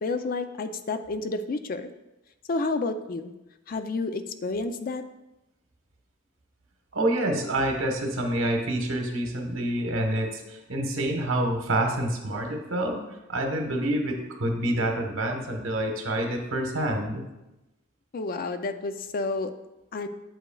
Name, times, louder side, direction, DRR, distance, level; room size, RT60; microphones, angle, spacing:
voice 1, 0.0-1.9 2.5-3.3 3.7-5.0 18.1-19.5 19.9-20.1, left 3 dB, 45° left, 9 dB, 0.4 m, -30 dB
voice 2, 6.9-13.0 13.3-17.2, right 1 dB, 75° right, 2 dB, 1.2 m, -27 dB
7.9 x 7.7 x 2.3 m, 0.97 s
head